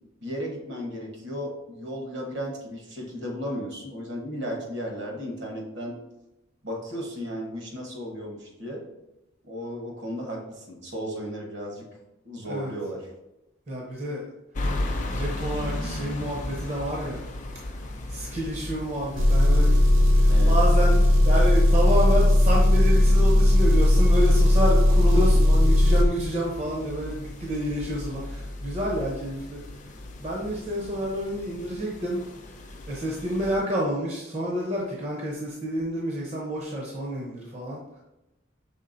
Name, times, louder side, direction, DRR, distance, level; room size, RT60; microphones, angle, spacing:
voice 1, 0.2-6.0 6.6-8.8 9.5-11.9 12.2-13.1 20.3-20.6 25.1-25.4, equal, 60° right, 0 dB, 1.1 m, -34 dB
voice 2, 13.7-14.2 15.1-17.3 18.1-19.8 20.1-29.6 30.2-32.2 32.9-37.8, equal, 30° right, -3 dB, 0.6 m, -29 dB
sound 1, 14.5-33.6, left 1 dB, 35° left, 0.4 m, -36 dB
Engine, 19.2-26.1, left 1 dB, 80° right, 0.7 m, -18 dB
5.6 x 3.6 x 2.5 m, 0.95 s
head